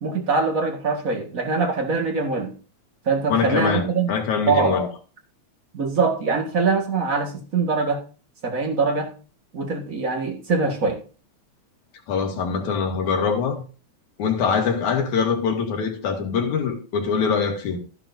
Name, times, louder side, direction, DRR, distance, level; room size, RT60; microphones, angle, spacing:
voice 1, 0.0-2.5 3.1-4.1 4.5-4.8 5.7-8.0 8.4-9.1 9.5-11.0, right 4 dB, 35° right, 1.7 m, -23 dB
voice 2, 3.3-4.9 12.1-13.6 14.2-17.8, left 6 dB, 80° left, 3.4 m, -23 dB
13.5 x 11.0 x 2.7 m
omnidirectional pair, 3.4 m